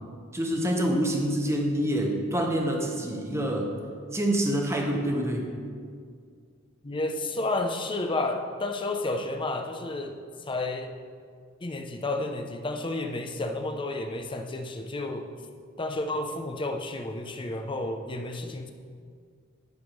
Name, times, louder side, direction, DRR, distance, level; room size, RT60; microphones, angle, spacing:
voice 1, 0.3-3.7 4.1-5.5, right 1 dB, 15° right, 1 dB, 0.9 m, -26 dB
voice 2, 6.8-10.2 10.5-10.9 11.6-15.3 15.8-18.7, left 2 dB, 25° left, 4 dB, 0.6 m, -31 dB
10.5 x 3.6 x 6.3 m, 2.1 s
head